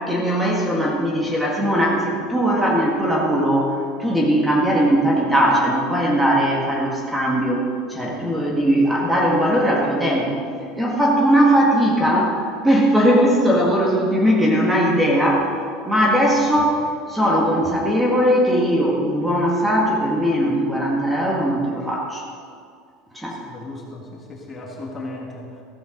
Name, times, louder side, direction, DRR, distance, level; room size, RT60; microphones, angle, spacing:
voice 1, 0.1-3.7 4.0-7.6 7.9-10.4 10.8-15.5 15.8-16.8 17.1-22.2 23.1-23.4, equal, 5° right, -2 dB, 1.8 m, -19 dB
voice 2, 23.5-25.6, left 2 dB, 20° left, -1 dB, 1.8 m, -35 dB
15.0 x 13.5 x 3.9 m, 2.2 s
cardioid pair, 160°, 0 cm